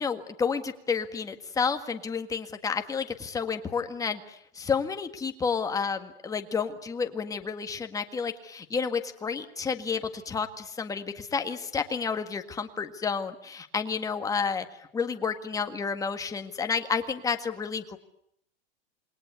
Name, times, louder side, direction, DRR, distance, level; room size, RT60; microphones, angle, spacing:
voice 1, 0.0-14.7 14.9-18.0, left 5 dB, 10° left, 7 dB, 1.8 m, -30 dB
28.0 x 21.0 x 9.6 m, 0.74 s
supercardioid pair, 155°, 30 cm